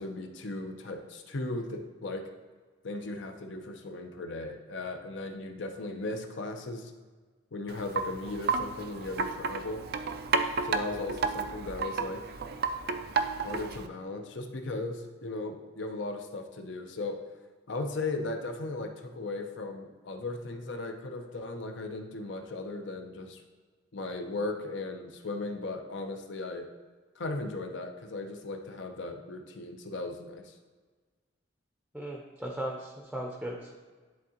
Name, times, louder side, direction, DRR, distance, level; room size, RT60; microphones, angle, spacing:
voice 1, 0.0-2.2 2.8-6.9 7.5-9.8 10.6-12.2 13.4-17.2 17.7-23.4 23.9-26.7 27.2-30.5, left 2 dB, 70° left, 5 dB, 0.7 m, -37 dB
Wind chime, 7.7-13.9, right 5 dB, 50° right, 0.4 m, -32 dB
voice 2, 31.9-33.7, right 1 dB, ahead, -1 dB, 0.6 m, -37 dB
10.5 x 3.7 x 2.9 m, 1.4 s
head